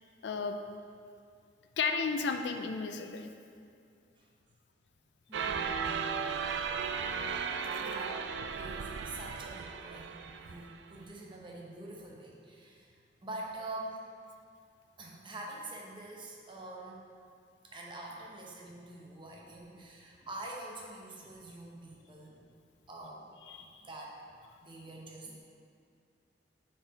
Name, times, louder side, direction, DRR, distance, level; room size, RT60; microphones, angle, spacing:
voice 1, 0.2-0.6 1.8-3.3 23.5-23.8, left 5 dB, 70° left, 6 dB, 0.4 m, -33 dB
voice 2, 5.3-5.9 7.3-7.4 7.8-8.2 8.6-14.0 15.0-17.1 17.6-22.5 22.9-23.3 23.6-24.2 24.6-25.4, right 2 dB, 30° right, -2 dB, 0.8 m, -45 dB
sound 1, 5.3-11.1, right 6 dB, 75° right, 0.4 m, -36 dB
6.4 x 4.6 x 4.0 m, 2.4 s
head